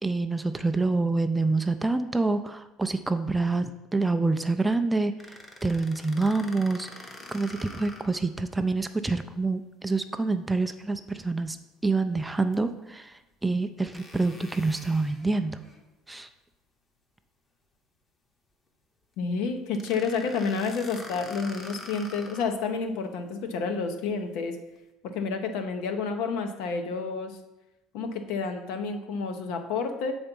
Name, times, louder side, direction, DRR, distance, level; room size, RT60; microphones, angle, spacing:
voice 1, 0.0-5.1 5.6-6.9 7.3-11.6 11.8-13.1 13.4-15.6 16.1-16.3, right 3 dB, 10° right, 9 dB, 0.3 m, -27 dB
sound 1, 5.2-8.3 8.7-8.8 12.5-12.6 13.9-15.8 19.7-22.6, left 2 dB, 20° left, 0.8 m, -45 dB
voice 2, 19.2-24.6 25.1-27.4 27.9-30.1, left 5 dB, 75° left, 6 dB, 0.8 m, -30 dB
7.0 x 4.3 x 5.3 m, 0.96 s
cardioid pair, 135°, 0 cm